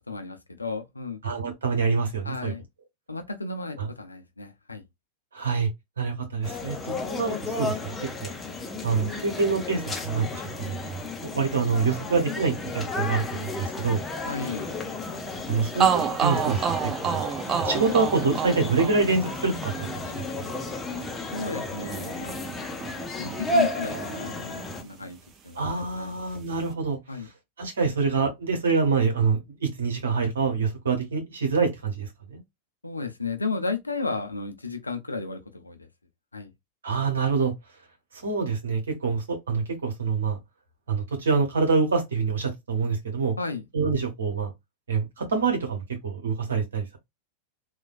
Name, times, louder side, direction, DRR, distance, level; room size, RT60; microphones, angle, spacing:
voice 1, 0.0-1.2 2.2-2.6 3.1-4.8 14.3-14.7 21.3-22.4 23.2-25.2 25.4-26.1 27.1-27.3 32.8-35.9 36.3-36.5 43.4-43.7, left 4 dB, 80° left, 0.5 m, -33 dB
voice 2, 1.2-2.5 3.8-3.9 5.3-5.7 6.0-8.3 8.8-14.0 15.5-16.8 17.0-17.2 17.6-20.5 25.6-27.0 27.6-32.4 36.8-37.5 38.2-40.4 40.9-43.3 43.7-44.5 44.9-47.0, right 4 dB, 70° right, 1.1 m, -26 dB
sound 1, 6.4-24.8, left 2 dB, 15° left, 0.6 m, -33 dB
sound 2, 15.4-15.5 15.8-23.7 23.9-25.1, right 8 dB, 25° right, 0.6 m, -30 dB
3.3 x 2.2 x 2.3 m
figure-of-eight pair, 90°, 0 cm